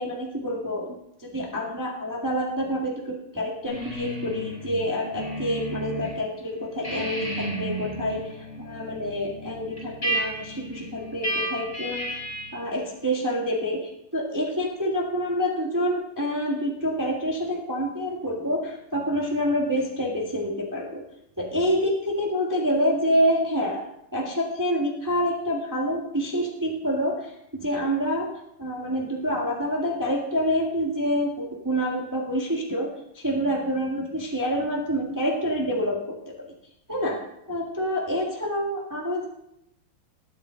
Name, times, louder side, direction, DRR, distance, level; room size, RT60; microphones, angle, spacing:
voice 1, 0.0-8.3 8.6-12.1 12.5-21.0 21.4-23.8 24.1-28.3 28.6-36.2 36.9-37.2 37.5-39.3, equal, 10° right, -2 dB, 1.4 m, -27 dB
sound 1, 3.7-6.1 6.5-12.6, right 1 dB, 20° left, 6.2 m, -33 dB
20.5 x 8.4 x 3.7 m, 0.77 s
omnidirectional pair, 2.3 m